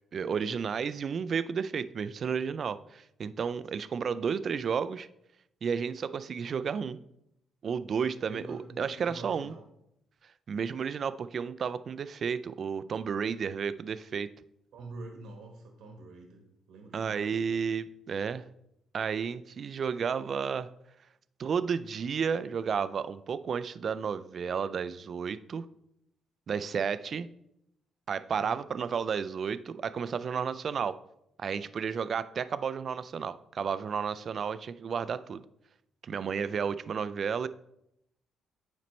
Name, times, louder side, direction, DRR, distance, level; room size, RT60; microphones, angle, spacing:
voice 1, 0.1-5.1 5.6-7.0 7.6-9.5 10.5-14.3 16.9-18.4 18.9-20.7 21.4-25.7 26.5-27.3 28.1-31.0 31.4-35.4 36.0-37.5, right 6 dB, 50° right, 14 dB, 0.3 m, -32 dB
voice 2, 8.2-9.6 14.7-17.6 28.4-28.5, right 2 dB, 85° right, 2 dB, 1.1 m, -46 dB
9.3 x 4.1 x 3.1 m, 0.80 s
cardioid pair, 90°, 0 cm